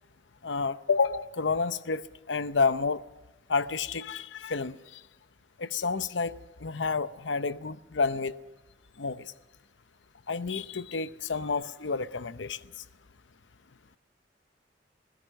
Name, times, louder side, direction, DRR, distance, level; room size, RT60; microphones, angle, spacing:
voice 1, 0.4-2.0 2.3-3.0 3.5-4.8 5.6-8.3 9.0-9.3 10.3-12.6, left 4 dB, 85° left, 0.8 m, -29 dB
27.0 x 17.0 x 6.5 m
head